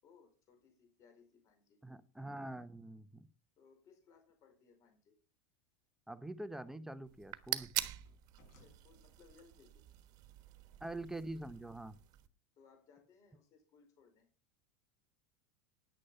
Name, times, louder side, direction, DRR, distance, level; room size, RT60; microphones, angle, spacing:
voice 1, 0.0-1.8 3.6-5.2 8.6-10.0 12.6-14.3, left 5 dB, 40° left, 4 dB, 5.0 m, -65 dB
voice 2, 1.8-3.3 6.1-7.7 10.8-12.0, right 1 dB, 5° right, 12 dB, 0.9 m, -45 dB
sound 1, 6.7-7.3 7.6-8.8, left 3 dB, 75° left, 6.6 m, -67 dB
sound 2, 7.1-12.3, right 15 dB, 50° right, 1.3 m, -44 dB
10.0 x 9.8 x 5.6 m, 0.35 s
supercardioid pair, 115°, 8 cm